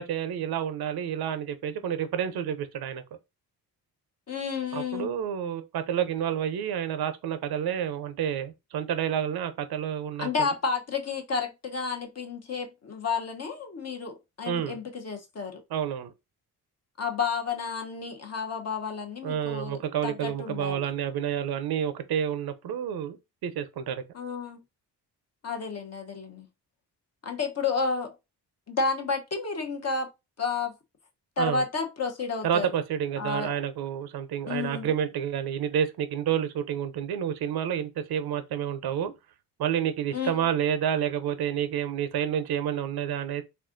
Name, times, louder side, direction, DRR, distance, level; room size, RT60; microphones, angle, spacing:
voice 1, 0.0-3.0 4.7-10.5 14.5-14.8 15.7-16.1 19.2-23.2 23.4-24.0 31.4-31.6 32.4-39.1 39.6-43.4, right 9 dB, 60° right, 0.6 m, -29 dB
voice 2, 4.3-5.2 10.2-15.6 17.0-20.9 24.1-24.6 25.4-26.5 27.2-28.1 28.7-30.1 30.4-30.7 31.4-32.7 33.2-33.5 34.4-34.9 40.1-40.4, left 5 dB, 35° left, 0.8 m, -31 dB
3.4 x 2.4 x 2.5 m
cardioid pair, 70°, 42 cm